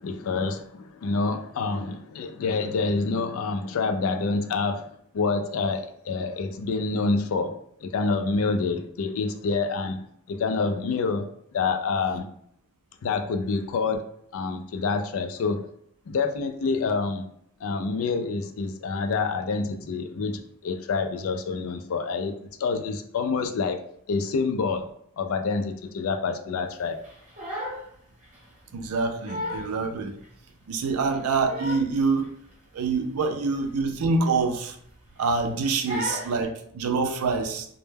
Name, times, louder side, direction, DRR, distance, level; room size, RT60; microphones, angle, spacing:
voice 1, 0.0-4.9 5.1-7.6 7.8-11.3 11.5-12.3 13.0-14.0 14.3-15.6 16.1-17.2 17.6-24.9 25.2-27.0, left 4 dB, 65° left, 0.3 m, -27 dB
Crying sobbing, 27.0-27.9 28.2-28.4 28.9-29.0 29.3-29.7 30.2-30.3 31.1-31.9 32.2-32.5 32.8-33.0 33.3-33.5 34.3-34.9 35.2-35.5 35.9-36.4, left 1 dB, 35° right, 0.8 m, -34 dB
voice 2, 28.7-30.2 30.7-32.3 32.7-34.8 35.2-37.7, right 4 dB, 85° right, 0.4 m, -26 dB
2.1 x 2.1 x 3.2 m
head